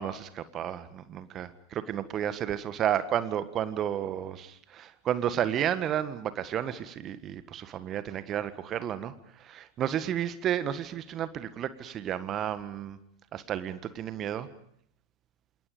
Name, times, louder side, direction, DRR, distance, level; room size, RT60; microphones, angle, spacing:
voice 1, 0.0-13.0 13.3-14.5, right 10 dB, 30° right, 12 dB, 1.7 m, -32 dB
28.0 x 27.5 x 5.2 m, 0.67 s
figure-of-eight pair, 90°, 0 cm